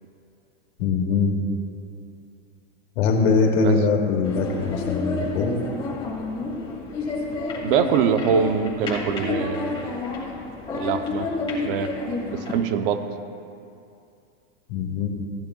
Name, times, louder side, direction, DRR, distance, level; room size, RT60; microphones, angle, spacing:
voice 1, 0.8-1.4 3.0-5.6 14.7-15.1, left 4 dB, 75° left, 0 dB, 2.1 m, -22 dB
sound 1, 4.2-12.6, left 3 dB, 15° left, 2.1 m, -30 dB
voice 2, 7.6-9.7 10.7-11.3 11.6-11.9 12.3-13.0, right 7 dB, 60° right, 8 dB, 0.8 m, -23 dB
15.5 x 10.5 x 2.4 m, 2.5 s
supercardioid pair, 155°, 31 cm